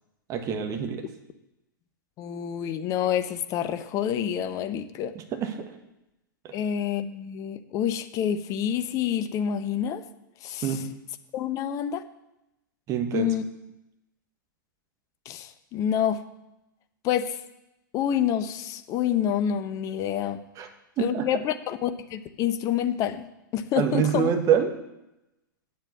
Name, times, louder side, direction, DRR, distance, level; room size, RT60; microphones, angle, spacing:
voice 1, 0.3-1.0 5.1-5.7 6.4-6.6 10.6-10.8 12.9-13.3 20.6-20.7 21.0-21.3 23.8-24.8, right 8 dB, 30° right, 5 dB, 1.5 m, -26 dB
voice 2, 2.2-5.1 6.5-10.0 10.4-10.7 11.3-12.0 13.1-13.4 15.3-16.2 17.0-17.4 17.9-20.4 21.0-23.2 23.5-24.3, left 9 dB, 30° left, 11 dB, 0.8 m, -27 dB
8.8 x 7.5 x 7.3 m, 0.91 s
figure-of-eight pair, 105°, 11 cm